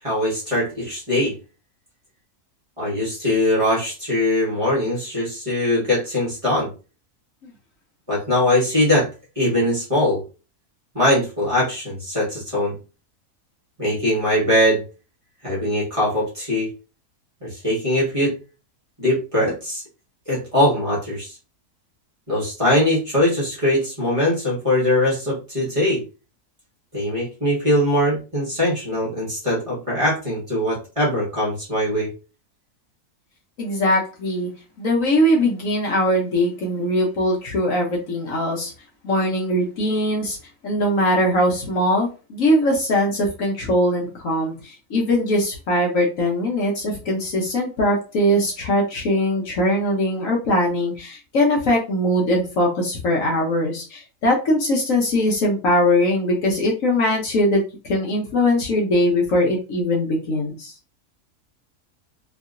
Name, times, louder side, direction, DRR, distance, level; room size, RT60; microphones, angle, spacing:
voice 1, 0.0-1.3 2.8-6.7 8.1-9.1 9.3-10.2 10.9-12.8 13.8-14.8 15.4-16.7 17.4-18.3 19.0-19.8 20.3-21.4 22.3-26.0 26.9-32.1, left 1 dB, 25° right, -6 dB, 1.1 m, -21 dB
voice 2, 33.6-34.5 34.8-38.7 39.0-40.4 40.6-60.7, left 1 dB, 60° left, -1 dB, 1.0 m, -21 dB
2.9 x 2.7 x 2.4 m, 0.33 s
omnidirectional pair, 1.7 m